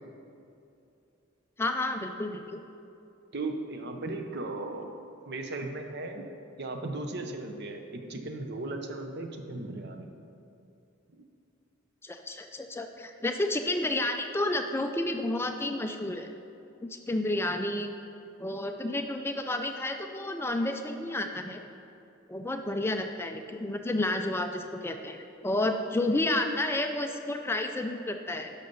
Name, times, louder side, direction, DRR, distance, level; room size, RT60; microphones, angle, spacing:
voice 1, 1.6-2.6 12.0-16.3 16.8-17.9 18.4-21.6 22.3-28.5, left 1 dB, 10° left, 5 dB, 0.4 m, -31 dB
voice 2, 3.3-4.9 5.3-6.2 6.6-10.1, right 2 dB, 55° right, 4 dB, 0.9 m, -36 dB
12.0 x 5.7 x 5.3 m, 2.7 s
head